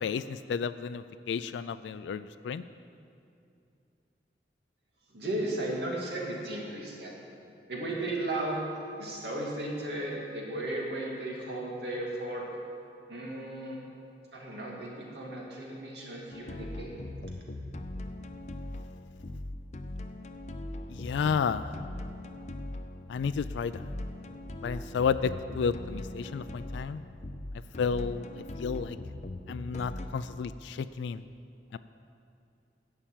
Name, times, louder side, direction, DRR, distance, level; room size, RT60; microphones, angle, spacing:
voice 1, 0.0-2.6 20.9-21.7 23.1-23.7 24.6-27.0 27.8-28.3 28.6-29.0 29.5-31.2 31.7-31.8, left 6 dB, 85° left, 12 dB, 0.3 m, -31 dB
voice 2, 5.1-7.2 7.7-8.6 9.0-12.5 13.1-13.8 14.3-17.1, right 1 dB, 70° right, -2 dB, 2.3 m, -35 dB
sound 1, 16.3-30.1, left 1 dB, 40° left, 0.5 m, -40 dB
11.0 x 5.8 x 9.1 m, 2.6 s
head